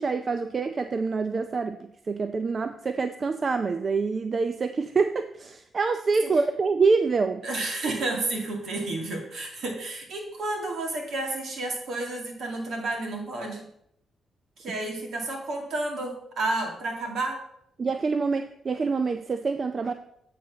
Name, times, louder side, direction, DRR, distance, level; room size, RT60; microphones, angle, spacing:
voice 1, 0.0-1.8 2.1-7.4 17.8-19.9, right 4 dB, 45° right, 9 dB, 0.5 m, -26 dB
voice 2, 7.4-13.7 14.6-17.4, right 2 dB, 70° right, 1 dB, 2.2 m, -31 dB
9.4 x 4.2 x 5.7 m, 0.74 s
supercardioid pair, 60°, 0 cm